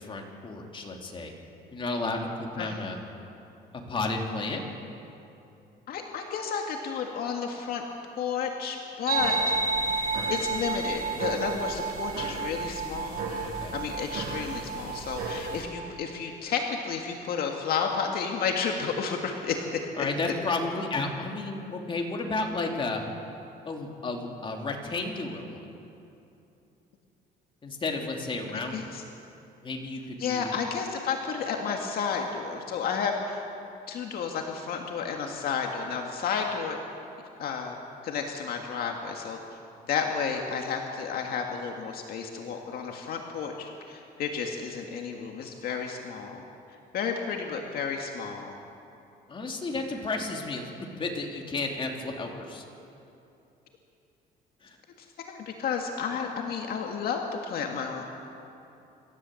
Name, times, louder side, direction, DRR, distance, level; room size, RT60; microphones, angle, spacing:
voice 1, 0.1-1.3 1.7-2.3 2.5-3.0 3.9-4.7 13.4-13.7 20.0-23.0 23.6-25.6 27.6-28.9 29.6-30.5 49.3-52.6 54.6-54.8, left 3 dB, 30° left, 1 dB, 3.1 m, -32 dB
voice 2, 5.9-7.8 8.2-13.4 13.7-19.6 28.5-29.0 30.2-33.4 33.9-36.8 37.4-37.8 38.0-39.4 39.9-46.4 46.9-48.6 55.2-58.0, left 6 dB, 65° left, 2 dB, 1.9 m, -32 dB
sound 1, 9.1-15.6, right 4 dB, 60° right, 7.1 m, -31 dB
27.0 x 13.5 x 7.8 m, 2.8 s
cardioid pair, 110°, 17 cm